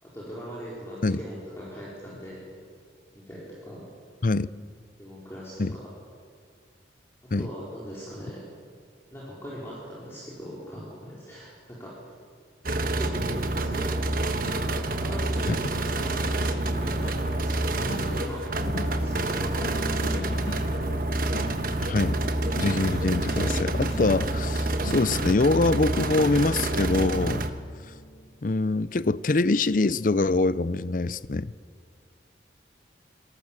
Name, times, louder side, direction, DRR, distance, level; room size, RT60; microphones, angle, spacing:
voice 1, 0.0-2.5 3.1-3.9 5.0-5.9 7.2-8.5 9.1-12.1 12.6-14.1 14.6-20.6, equal, 15° left, 4.4 m, -40 dB
sound 1, 12.6-27.5, right 2 dB, 50° right, 1.3 m, -28 dB
sound 2, 13.6-28.7 29.1-29.4 29.7-29.9, left 1 dB, 65° left, 1.3 m, -42 dB
voice 2, 21.9-22.2 22.6-27.4 28.4-31.5, left 3 dB, 45° left, 0.5 m, -24 dB
26.5 x 18.5 x 7.4 m
head